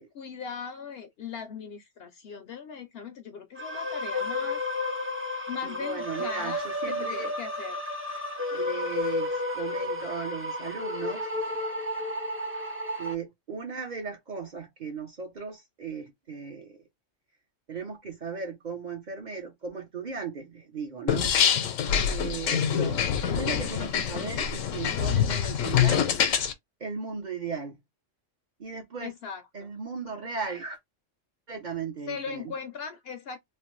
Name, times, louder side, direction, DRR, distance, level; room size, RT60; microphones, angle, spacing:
voice 1, 0.1-4.6 5.5-7.8 29.0-29.7 32.1-33.4, left 6 dB, 65° left, 0.7 m, -39 dB
sound 1, 3.6-13.1, left 2 dB, 20° right, 0.4 m, -32 dB
voice 2, 5.6-7.3 8.5-11.3 12.5-12.7 13.0-16.8 17.7-21.3 22.0-26.1 26.8-27.8 28.6-29.1 29.5-30.8 31.5-32.5, right 5 dB, 45° right, 0.7 m, -37 dB
sound 2, 21.1-26.5, left 8 dB, 85° left, 1.0 m, -25 dB
3.2 x 2.1 x 3.0 m
omnidirectional pair, 1.3 m